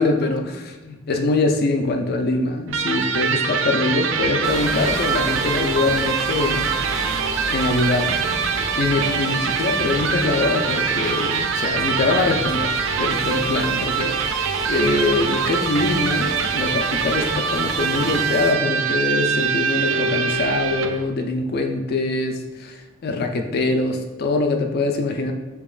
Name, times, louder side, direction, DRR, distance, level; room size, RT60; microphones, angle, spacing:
voice 1, 0.0-6.7 7.5-8.3 8.7-25.3, left 3 dB, 50° left, 4 dB, 0.4 m, -23 dB
Electric guitar, 2.7-21.1, right 6 dB, 70° right, 0.4 m, -23 dB
sound 1, 4.4-18.5, equal, ahead, 0.7 m, -34 dB
6.9 x 2.9 x 2.4 m, 1.2 s
head